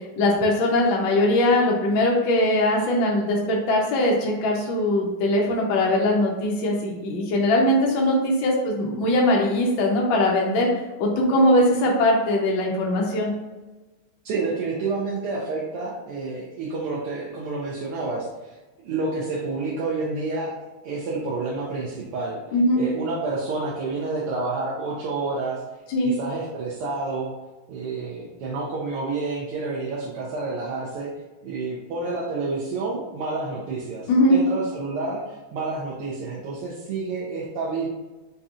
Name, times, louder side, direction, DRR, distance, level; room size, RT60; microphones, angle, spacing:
voice 1, 0.2-10.7 11.0-13.3 22.5-22.8 25.9-26.1 34.1-34.4, left 1 dB, 70° left, -2 dB, 1.4 m, -21 dB
voice 2, 14.2-18.3 18.8-20.5 20.8-22.4 22.8-25.6 26.0-27.3 27.7-31.1 31.4-37.9, right 3 dB, 90° right, -5 dB, 1.7 m, -29 dB
5.2 x 2.8 x 2.4 m, 1.2 s
omnidirectional pair, 2.4 m